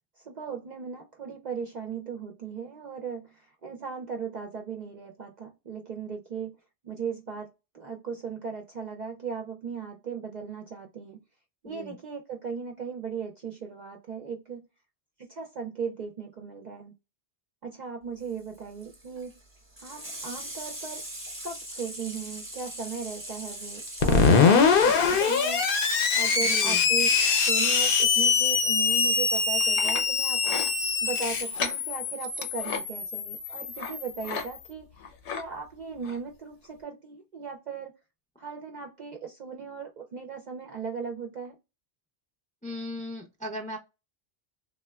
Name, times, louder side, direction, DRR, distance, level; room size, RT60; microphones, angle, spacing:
voice 1, 0.2-6.6 6.8-7.5 7.7-11.2 11.6-14.6 15.3-16.9 17.6-19.3 19.8-21.0 21.4-24.5 24.8-25.7 26.1-27.1 27.4-34.9 35.3-37.9 38.4-41.6, right 6 dB, 55° right, 0.5 m, -37 dB
Water tap faucet / Sink (filling or washing), 18.2-30.0 31.4-31.5, right 1 dB, 10° right, 0.9 m, -41 dB
Screech, 24.0-34.5, left 5 dB, 60° left, 0.7 m, -23 dB
voice 2, 26.4-26.9 42.6-43.8, left 1 dB, 10° left, 0.4 m, -37 dB
sound 1, 29.3-30.0 30.4-30.7 31.4-31.8 32.2-32.8 33.8-33.9 34.2-34.5 34.8-35.4 36.0-36.2 36.7-36.8, left 5 dB, 80° left, 1.0 m, -34 dB
3.5 x 2.1 x 2.2 m
omnidirectional pair, 1.1 m